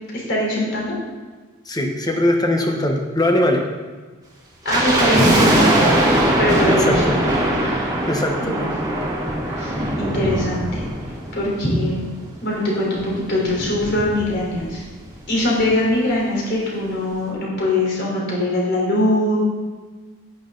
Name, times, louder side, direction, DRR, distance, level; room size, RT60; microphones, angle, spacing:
voice 1, 0.1-0.9 4.6-5.9 6.4-7.2 7.6-7.9 8.4-8.7 9.0-9.1 9.4-10.8 11.3-12.1 12.4-14.8 15.3-19.4, left 1 dB, 50° left, -4 dB, 3.9 m, -22 dB
voice 2, 1.7-3.6 6.7-7.2 8.1-8.6, left 1 dB, 15° left, 3 dB, 1.0 m, -20 dB
sound 1, 4.7-11.9 12.2-12.3 13.0-14.8 15.0-15.1 15.4-15.7 16.1-16.2, right 1 dB, 15° right, 1.7 m, -21 dB
10.5 x 10.5 x 3.9 m, 1.4 s
head